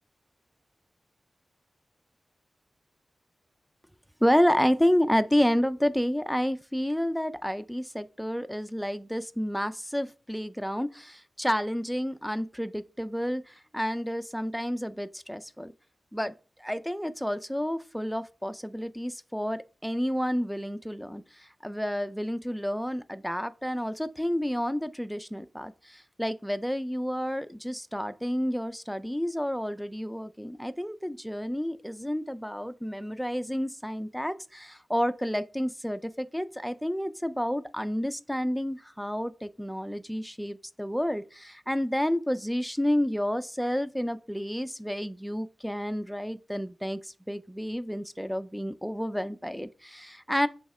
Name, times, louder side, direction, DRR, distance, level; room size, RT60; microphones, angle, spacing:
voice 1, 4.2-15.7 16.1-50.5, equal, ahead, 0.4 m, -30 dB
7.1 x 3.6 x 4.2 m
wide cardioid pair, 95°, 0 cm